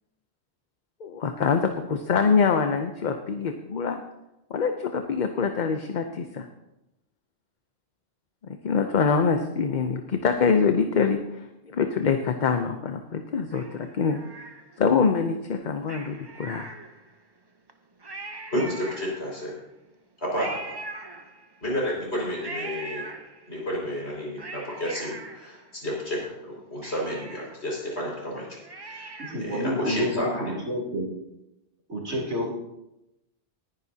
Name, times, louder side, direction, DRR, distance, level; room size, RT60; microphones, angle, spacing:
voice 1, 1.0-4.0 4.5-6.5 8.6-14.2 14.8-16.7, left 5 dB, 50° left, 6 dB, 0.8 m, -24 dB
Cat, 13.5-15.0 15.8-17.2 17.7-17.8 18.0-19.5 20.3-21.7 22.4-23.7 24.1-26.1 26.5-26.6 26.8-29.6 30.0-30.1, right 3 dB, 25° right, 0.8 m, -41 dB
voice 2, 18.5-19.5 20.2-20.8 21.6-23.1 23.5-28.5 28.7-30.7, equal, 70° left, -3 dB, 5.5 m, -31 dB
voice 3, 29.2-31.1 31.9-32.5, equal, 85° right, -3 dB, 3.6 m, -29 dB
19.5 x 10.5 x 2.8 m, 0.90 s
omnidirectional pair, 1.1 m